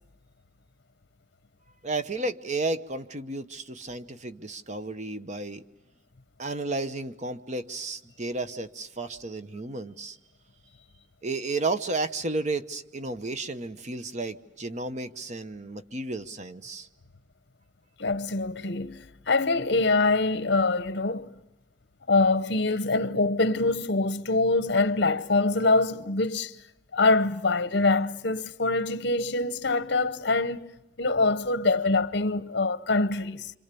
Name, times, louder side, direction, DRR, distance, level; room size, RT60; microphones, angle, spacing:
voice 1, 1.8-5.6 6.4-10.2 11.2-16.9, right 2 dB, 40° right, 1.0 m, -32 dB
voice 2, 18.0-21.3 22.1-26.5 26.9-33.5, left 3 dB, 65° left, 0.9 m, -24 dB
27.0 x 27.0 x 6.9 m
head